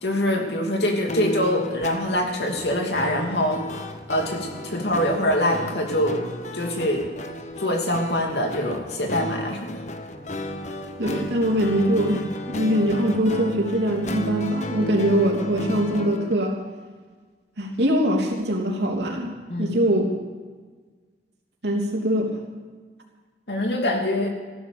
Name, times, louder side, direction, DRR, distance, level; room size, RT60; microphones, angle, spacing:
voice 1, 0.0-6.2 6.5-7.1 7.6-9.8 19.5-19.8 23.5-24.3, left 1 dB, 75° left, 2 dB, 2.8 m, -24 dB
sound 1, 1.1-16.3, left 1 dB, 40° left, 1.1 m, -33 dB
voice 2, 11.0-16.6 17.6-20.1 21.6-22.3, equal, 75° right, 0 dB, 3.1 m, -22 dB
15.0 x 12.5 x 6.8 m, 1.4 s
head